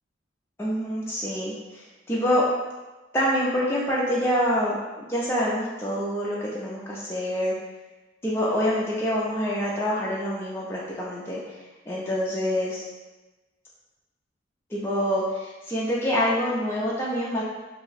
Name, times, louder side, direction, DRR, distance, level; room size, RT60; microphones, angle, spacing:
voice 1, 0.6-2.5 3.1-7.5 8.2-11.6 11.9-12.8 14.7-17.4, equal, 15° left, -7 dB, 0.4 m, -26 dB
2.6 x 2.0 x 3.9 m, 1.2 s
head